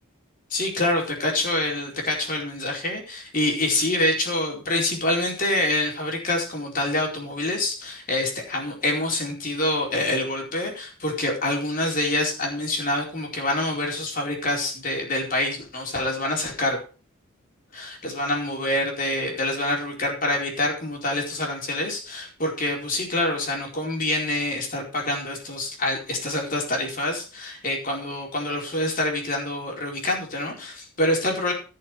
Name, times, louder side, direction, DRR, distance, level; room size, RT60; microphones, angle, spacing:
voice 1, 0.5-16.8 17.7-31.5, left 1 dB, 40° left, 0 dB, 4.5 m, -26 dB
17.0 x 6.6 x 4.8 m, 0.36 s
head